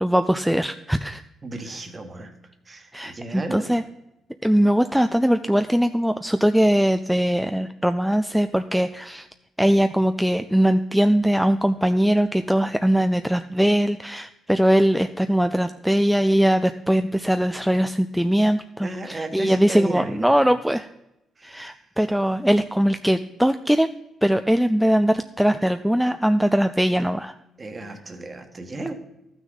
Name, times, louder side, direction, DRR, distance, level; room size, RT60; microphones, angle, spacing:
voice 1, 0.0-1.2 2.9-3.8 4.4-9.3 9.6-20.9 21.4-23.9 24.2-27.3, equal, ahead, 8 dB, 0.3 m, -21 dB
voice 2, 1.4-2.4 2.6-3.8 18.8-20.5 21.4-21.8 27.6-28.9, right 2 dB, 30° right, 6 dB, 1.4 m, -34 dB
12.5 x 6.2 x 3.8 m, 0.89 s
cardioid pair, 90°, 0 cm